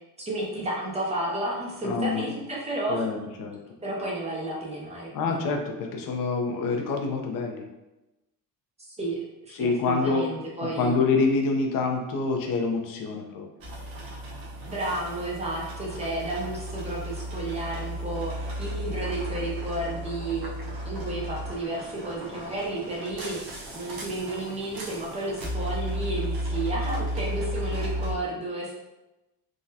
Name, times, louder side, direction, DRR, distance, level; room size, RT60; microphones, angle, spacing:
voice 1, 0.2-3.1 3.8-5.4 8.9-9.2 9.4-11.0 14.7-20.5 20.8-28.7, right 1 dB, 20° right, -4 dB, 0.5 m, -32 dB
voice 2, 1.8-2.3 2.9-3.6 5.1-7.6 9.5-10.2 10.8-13.5, left 4 dB, 70° left, 2 dB, 0.6 m, -26 dB
sound 1, 13.6-28.1, equal, 70° right, 1.0 m, -34 dB
3.6 x 2.1 x 2.7 m, 1.0 s
cardioid pair, 155°, 36 cm